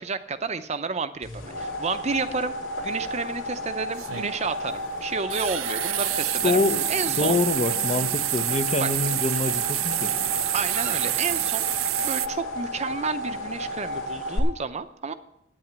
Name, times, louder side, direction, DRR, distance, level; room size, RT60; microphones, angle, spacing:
voice 1, 0.0-2.5 2.8-6.6 6.9-7.4 8.8-8.9 10.5-15.1, right 4 dB, 35° right, 11 dB, 0.6 m, -31 dB
sound 1, 1.2-14.4, left 1 dB, 80° left, 2.9 m, -33 dB
sound 2, 2.8-2.9 3.9-4.3 5.3-12.3, right 17 dB, 85° right, 0.4 m, -27 dB
sound 3, 6.3-11.5, left 2 dB, 60° left, 1.0 m, -45 dB
voice 2, 6.4-6.8 7.2-10.1, left 3 dB, 35° left, 11 dB, 0.6 m, -25 dB
9.4 x 8.8 x 7.4 m, 0.77 s
head